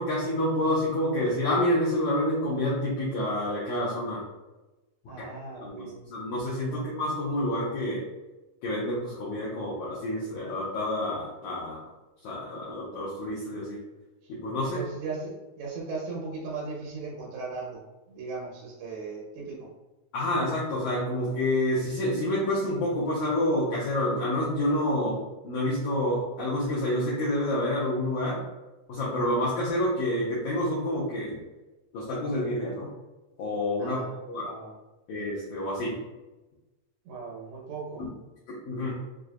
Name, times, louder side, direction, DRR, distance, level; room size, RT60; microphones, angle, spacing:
voice 1, 0.0-4.2 5.6-8.0 8.6-11.8 12.2-13.8 14.3-14.8 20.1-28.4 28.9-31.4 31.9-32.9 33.4-34.0 34.3-34.5 35.1-36.0 38.0-38.1 38.6-38.9, left 1 dB, 90° left, -7 dB, 1.6 m, -28 dB
voice 2, 5.1-6.1 6.7-6.8 14.6-17.8 18.1-19.7 33.8-34.7 37.1-38.1, right 4 dB, 85° right, -4 dB, 2.8 m, -38 dB
6.2 x 2.5 x 2.3 m, 1.1 s
omnidirectional pair, 4.4 m